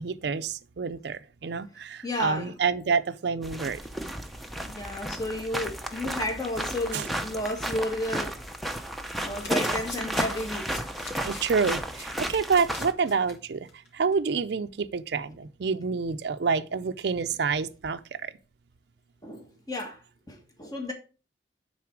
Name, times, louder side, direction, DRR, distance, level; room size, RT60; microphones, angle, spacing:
voice 1, 0.0-3.8 6.9-7.0 11.2-13.7 13.9-18.0, right 5 dB, 65° right, 0.5 m, -28 dB
voice 2, 2.0-2.5 3.9-4.1 4.6-8.3 9.2-10.7 19.2-20.0 20.3-20.9, left 1 dB, 20° left, 1.4 m, -32 dB
sound 1, 3.4-12.9, equal, ahead, 0.6 m, -33 dB
Domestic sounds home sounds, 9.3-13.3 13.7-13.9 14.1-14.2, left 3 dB, 75° left, 2.3 m, -43 dB
9.5 x 4.1 x 4.7 m
head